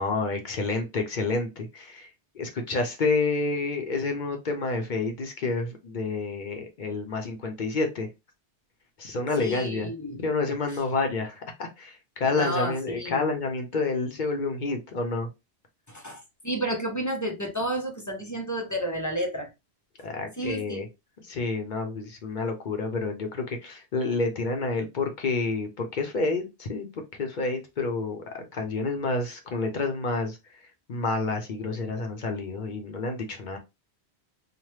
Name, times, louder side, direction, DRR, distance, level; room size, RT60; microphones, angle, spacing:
voice 1, 0.0-8.1 9.0-9.9 10.2-15.3 20.0-20.9 21.2-30.4 30.9-33.6, left 3 dB, 55° left, 0.7 m, -29 dB
voice 2, 9.4-10.2 12.3-13.3 15.9-19.5 20.0-20.1 20.4-20.9, equal, 30° left, 0.4 m, -31 dB
2.9 x 2.1 x 3.2 m
omnidirectional pair, 1.1 m